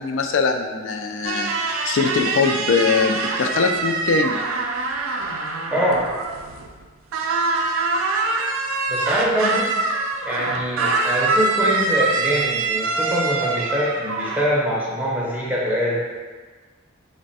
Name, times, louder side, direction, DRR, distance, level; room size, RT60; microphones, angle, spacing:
voice 1, 0.0-1.5 1.9-4.4, left 5 dB, 65° left, 5 dB, 0.3 m, -21 dB
sound 1, 1.2-6.8 7.1-14.5, right 3 dB, 85° right, 0.4 m, -24 dB
voice 2, 5.7-6.0 8.9-9.7 10.2-16.0, equal, 10° right, -6 dB, 0.5 m, -23 dB
3.3 x 2.1 x 4.0 m, 1.4 s
head